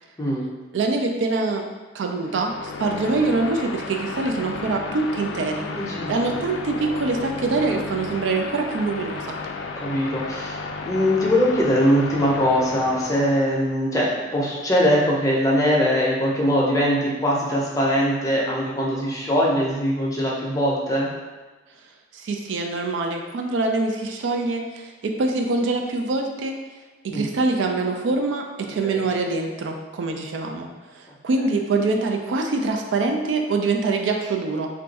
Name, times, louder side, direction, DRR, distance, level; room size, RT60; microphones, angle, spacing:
voice 1, 0.7-1.6 1.9-5.7 6.1-9.4 22.1-26.6 27.0-30.7 30.9-34.7, right 3 dB, 80° right, 3 dB, 0.4 m, -24 dB
sound 1, 2.2-13.7, left 4 dB, 70° left, 0.3 m, -33 dB
voice 2, 5.5-6.4 9.8-10.6 10.8-21.1 27.1-27.3 28.8-29.0, equal, 20° left, -4 dB, 0.6 m, -22 dB
2.5 x 2.3 x 4.0 m, 1.2 s
head